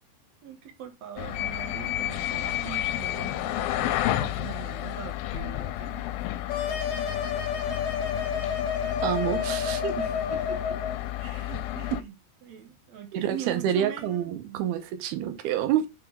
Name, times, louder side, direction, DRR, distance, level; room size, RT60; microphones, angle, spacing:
voice 1, 0.4-6.1 10.0-10.8 11.2-12.2 12.4-14.7, right 8 dB, 70° right, 1.8 m, -42 dB
sound 1, 1.2-12.0, left 13 dB, 80° left, 2.3 m, -31 dB
sound 2, 6.5-11.0, left 7 dB, 60° left, 1.8 m, -30 dB
voice 2, 9.0-10.0 13.1-15.9, right 10 dB, 90° right, 2.9 m, -28 dB
5.9 x 4.8 x 3.7 m
omnidirectional pair, 4.4 m